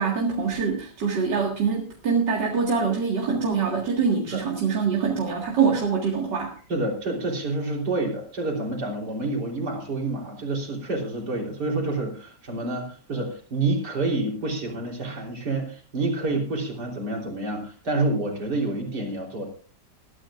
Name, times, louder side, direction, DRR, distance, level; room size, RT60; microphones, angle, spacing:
voice 1, 0.0-6.6, right 5 dB, 85° right, -1 dB, 2.6 m, -24 dB
voice 2, 6.7-19.5, right 2 dB, 70° right, 0 dB, 4.3 m, -28 dB
21.5 x 13.0 x 2.5 m, 0.40 s
omnidirectional pair, 1.8 m